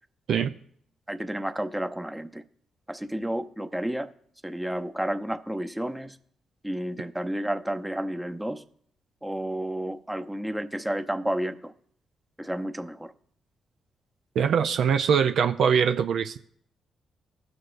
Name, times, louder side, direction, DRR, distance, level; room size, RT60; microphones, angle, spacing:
voice 1, 1.1-2.4 2.9-4.1 4.4-6.2 6.6-8.6 9.2-11.7 12.4-13.1, right 1 dB, 10° right, 0.7 m, -31 dB
voice 2, 14.4-16.4, right 7 dB, 70° right, 0.4 m, -22 dB
16.0 x 6.3 x 2.6 m
supercardioid pair, 50°, 0 cm